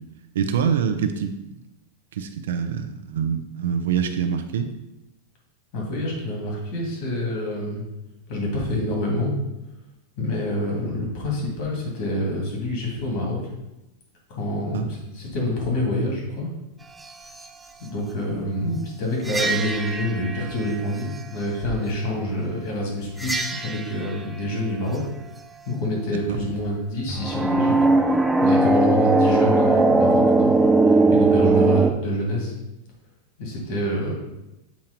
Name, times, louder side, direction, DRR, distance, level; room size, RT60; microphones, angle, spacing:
voice 1, 0.3-1.3 2.1-4.7 14.7-14.9, right 7 dB, 90° right, 6 dB, 0.6 m, -25 dB
voice 2, 5.7-7.8 8.3-9.3 10.2-13.4 14.3-16.5 17.8-25.0 25.7-27.8 28.4-30.6 30.9-32.5 33.4-34.1, left 1 dB, 45° left, -2 dB, 2.1 m, -27 dB
sound 1, 19.3-20.7 23.2-23.9 27.1-31.9, right 2 dB, 5° right, 0.3 m, -19 dB
7.2 x 3.0 x 5.1 m, 0.94 s
supercardioid pair, 165°, 0 cm